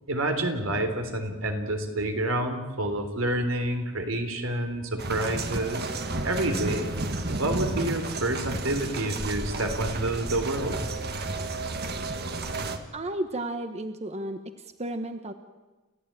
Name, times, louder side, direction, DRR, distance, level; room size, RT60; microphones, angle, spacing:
voice 1, 0.1-7.0 7.4-10.8, right 1 dB, 85° right, 5 dB, 3.6 m, -28 dB
sound 1, 5.0-12.8, right 2 dB, 50° right, 1.7 m, -32 dB
voice 2, 12.4-15.3, right 1 dB, 30° right, 8 dB, 1.1 m, -34 dB
29.5 x 14.5 x 9.0 m, 1.2 s
head